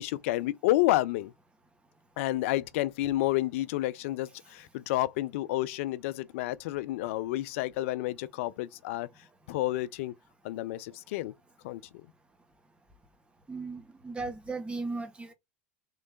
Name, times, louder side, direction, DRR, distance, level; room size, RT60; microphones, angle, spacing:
voice 1, 0.0-1.3 2.2-9.1 9.5-10.1 10.4-11.3 11.6-11.8, left 16 dB, 70° left, 0.5 m, -30 dB
voice 2, 13.5-15.3, right 3 dB, 15° right, 1.6 m, -36 dB
3.8 x 3.3 x 3.5 m
hypercardioid pair, 85°, 7 cm